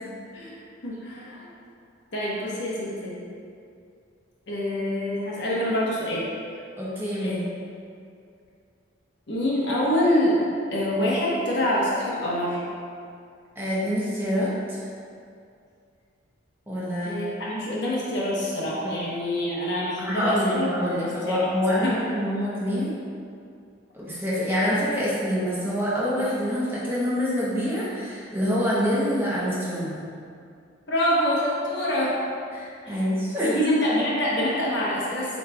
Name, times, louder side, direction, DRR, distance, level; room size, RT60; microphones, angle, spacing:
voice 1, 0.8-1.5 2.1-3.1 4.5-6.3 7.2-7.4 9.3-12.6 17.0-20.7 21.0-21.5 21.8-22.0 30.9-32.2 32.8-33.0 33.4-35.4, equal, 60° left, -6 dB, 1.0 m, -26 dB
voice 2, 6.8-7.4 13.6-14.8 16.7-17.2 20.1-22.9 23.9-30.0 32.5-33.7, equal, 10° right, -8 dB, 0.7 m, -26 dB
7.4 x 3.2 x 2.3 m, 2.4 s
head